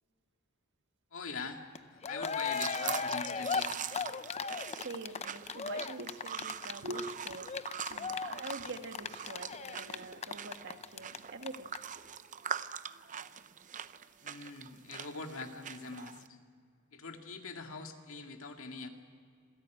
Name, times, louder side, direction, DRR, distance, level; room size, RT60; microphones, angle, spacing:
voice 1, 1.1-1.6 1.9-3.7 14.2-16.4 16.9-18.9, left 4 dB, 65° left, 2.1 m, -43 dB
Cheering, 1.8-1.9 2.0-11.2 11.4-11.5 11.7-11.8, left 5 dB, 30° left, 0.6 m, -36 dB
sound 1, 2.3-16.3, right 8 dB, 35° right, 0.6 m, -43 dB
voice 2, 4.4-11.7, right 2 dB, 55° right, 1.7 m, -45 dB
27.0 x 16.5 x 9.2 m
head